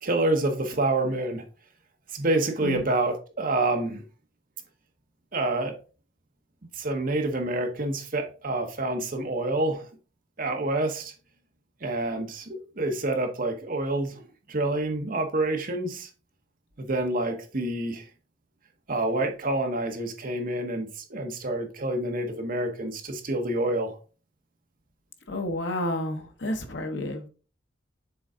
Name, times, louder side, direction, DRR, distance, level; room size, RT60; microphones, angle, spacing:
voice 1, 0.0-1.4 2.1-4.0 5.3-5.7 6.8-9.9 10.4-11.1 11.8-14.2 14.5-16.1 16.8-18.1 18.9-23.9, right 2 dB, 45° right, 1.1 m, -27 dB
voice 2, 25.3-27.3, left 1 dB, 65° left, 1.1 m, -30 dB
6.9 x 3.9 x 3.7 m
head